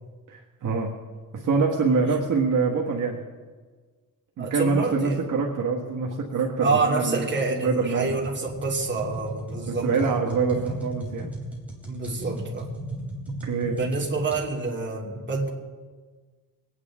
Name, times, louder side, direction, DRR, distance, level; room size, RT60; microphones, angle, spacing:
voice 1, 0.3-0.9 1.3-3.2 4.4-7.3 7.6-8.2 9.7-11.3 13.4-13.8, right 4 dB, 65° right, 0 dB, 1.6 m, -25 dB
voice 2, 4.4-5.3 6.6-10.2 11.9-12.7 13.7-15.5, right 3 dB, 35° right, -2 dB, 3.0 m, -27 dB
sound 1, 8.1-14.4, right 1 dB, 5° right, 3.5 m, -36 dB
24.0 x 9.6 x 3.7 m, 1.4 s
cardioid pair, 95°, 33 cm